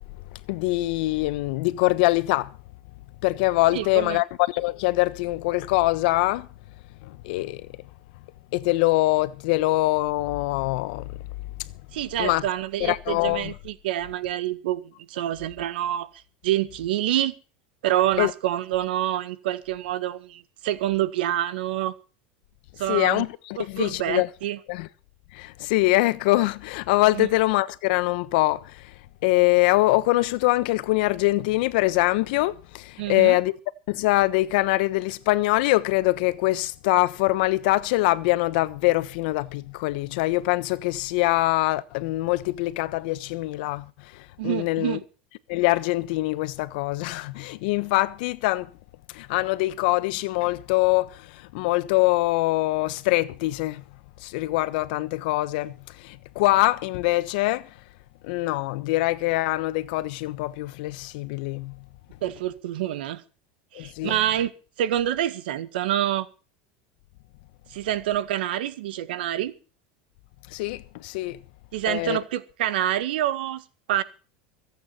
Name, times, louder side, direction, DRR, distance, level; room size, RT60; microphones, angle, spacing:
voice 1, 0.3-2.6 3.2-6.5 7.0-7.7 8.5-11.2 11.6-11.7 12.2-12.4 12.8-13.5 18.2-18.3 22.9-24.3 24.7-24.9 25.3-28.9 29.2-33.5 33.9-45.0 45.5-48.7 49.1-53.8 54.2-57.7 58.2-61.8 63.7-64.2 70.5-71.4 71.9-72.2, left 19 dB, 70° left, 1.2 m, -24 dB
voice 2, 3.7-4.2 11.9-16.1 16.4-17.3 17.8-21.9 22.8-23.2 23.6-24.6 27.2-27.3 33.0-33.4 44.4-45.0 62.2-63.2 63.7-64.5 64.8-66.3 67.7-69.5 71.7-73.6 73.9-74.0, right 12 dB, 85° right, 1.7 m, -27 dB
24.5 x 8.7 x 4.4 m
supercardioid pair, 125°, 5 cm